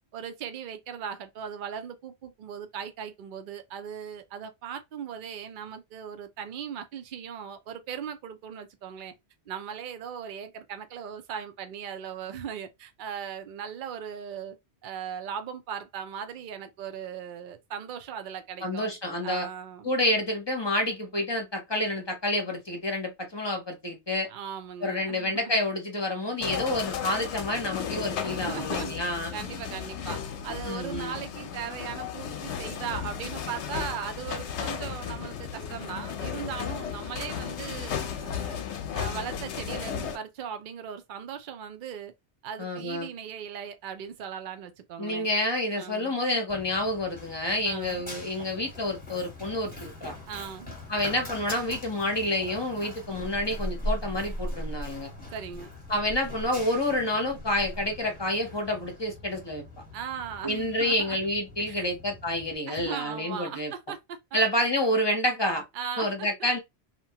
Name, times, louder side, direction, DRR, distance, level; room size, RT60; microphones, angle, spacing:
voice 1, 0.1-9.1 9.5-14.6 14.8-18.9 19.2-19.9 24.3-25.5 28.2-38.6 38.9-42.1 42.4-45.3 45.8-46.2 47.6-48.0 50.3-50.8 55.3-55.7 59.9-61.2 61.7-61.9 62.7-64.2 65.7-66.3, right 8 dB, 55° right, 0.6 m, -38 dB
voice 2, 18.6-19.5 19.8-24.3 24.8-29.3 30.7-31.2 42.6-43.1 45.0-50.1 50.9-55.1 55.9-59.6 60.4-63.7 64.3-65.6 66.0-66.6, left 1 dB, 30° left, 0.7 m, -28 dB
sound 1, 26.4-40.2, left 8 dB, 90° left, 0.9 m, -35 dB
Run, 46.5-62.5, equal, 10° left, 1.1 m, -40 dB
2.8 x 2.1 x 2.8 m
omnidirectional pair, 1.1 m